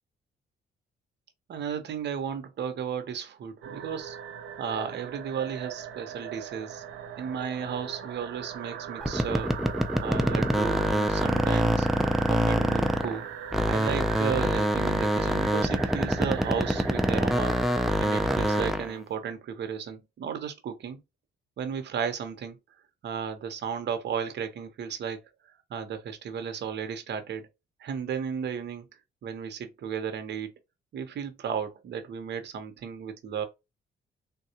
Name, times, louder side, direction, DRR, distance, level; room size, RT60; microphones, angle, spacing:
voice 1, 1.5-4.2 4.6-6.8 7.2-9.5 10.0-11.9 12.3-13.2 13.7-17.6 18.0-21.0 21.6-22.6 23.0-25.2 25.7-27.5 27.8-28.9 29.2-30.5 30.9-33.5, right 7 dB, 60° right, 0.8 m, -34 dB
sound 1, 3.6-18.7, right 8 dB, 90° right, 0.6 m, -39 dB
sound 2, 9.0-13.2 13.5-18.9, equal, ahead, 0.4 m, -25 dB
3.6 x 2.3 x 2.8 m
cardioid pair, 90°, 20 cm